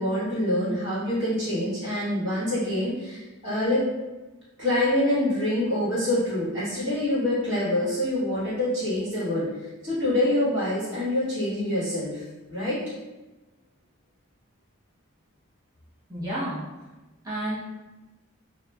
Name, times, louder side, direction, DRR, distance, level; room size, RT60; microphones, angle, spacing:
voice 1, 0.0-3.9 4.6-9.5 9.8-12.2 12.5-12.8, left 1 dB, 65° right, -11 dB, 1.5 m, -26 dB
voice 2, 16.1-16.6 17.2-17.6, right 1 dB, 15° right, -11 dB, 0.6 m, -30 dB
3.0 x 2.4 x 2.3 m, 1.1 s
head